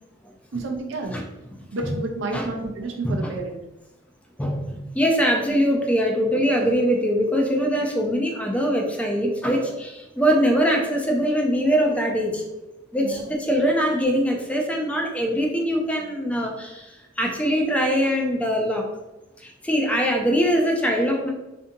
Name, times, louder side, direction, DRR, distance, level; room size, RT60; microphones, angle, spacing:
voice 1, 0.5-1.2 1.7-3.6 13.0-13.2, right 2 dB, 75° right, 2 dB, 0.5 m, -30 dB
voice 2, 4.4-12.4 12.9-18.9 19.4-21.3, equal, 5° left, 1 dB, 0.3 m, -22 dB
2.7 x 2.6 x 2.5 m, 1.0 s
head